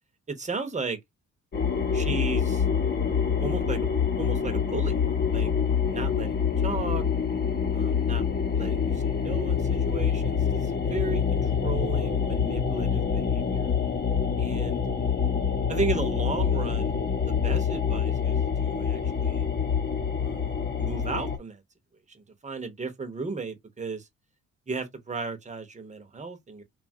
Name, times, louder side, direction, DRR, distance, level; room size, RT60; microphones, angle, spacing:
voice 1, 0.3-1.0 1.9-2.6 3.4-4.9 5.3-5.5 5.9-7.0 7.7-8.3 8.5-13.7 14.4-14.8 15.7-16.9 17.3-19.5 20.2-21.6 22.1-24.1 24.7-26.6, right 3 dB, 25° right, 0.8 m, -35 dB
sound 1, 1.5-21.4, left 6 dB, 35° left, 0.8 m, -26 dB
2.8 x 2.4 x 2.7 m
cardioid pair, 90°, 30 cm